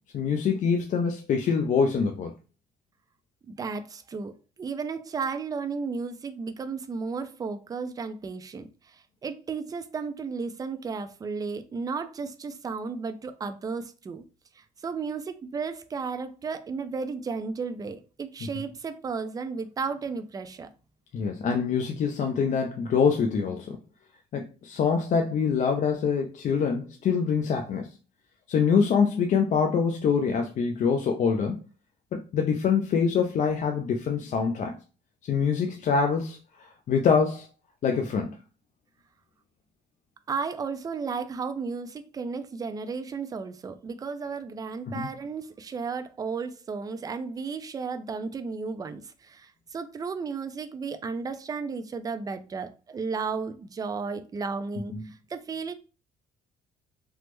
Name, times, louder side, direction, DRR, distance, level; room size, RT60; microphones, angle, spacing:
voice 1, 0.1-2.3 21.1-23.8 24.3-27.9 28.5-31.6 32.1-34.8 35.2-37.5 37.8-38.4 44.9-45.1, left 6 dB, 45° left, 0.4 m, -25 dB
voice 2, 3.5-4.3 4.6-14.2 14.6-20.7 40.3-55.7, right 5 dB, 20° right, 0.4 m, -34 dB
3.3 x 2.0 x 3.1 m
cardioid pair, 110°, 17 cm